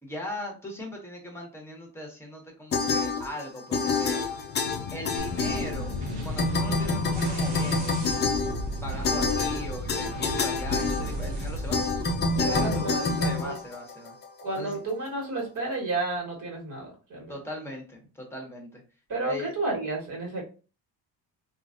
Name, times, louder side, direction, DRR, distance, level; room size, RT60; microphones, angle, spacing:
voice 1, 0.0-4.3 4.9-6.0 6.2-8.1 8.8-11.8 12.4-14.2 14.6-14.8 17.3-18.8 19.2-19.5, left 1 dB, 5° left, 1 dB, 1.0 m, -39 dB
sound 1, 2.7-3.5 3.7-6.1 6.4-14.2, left 3 dB, 25° left, 0.4 m, -27 dB
sound 2, 4.2-9.1, left 8 dB, 80° left, 0.6 m, -40 dB
sound 3, 5.2-12.8, equal, 65° right, 1.1 m, -34 dB
voice 2, 12.4-13.5 14.4-17.3 19.1-20.5, right 2 dB, 50° right, -1 dB, 1.6 m, -31 dB
3.1 x 2.5 x 2.5 m, 0.34 s
cardioid pair, 120°, 42 cm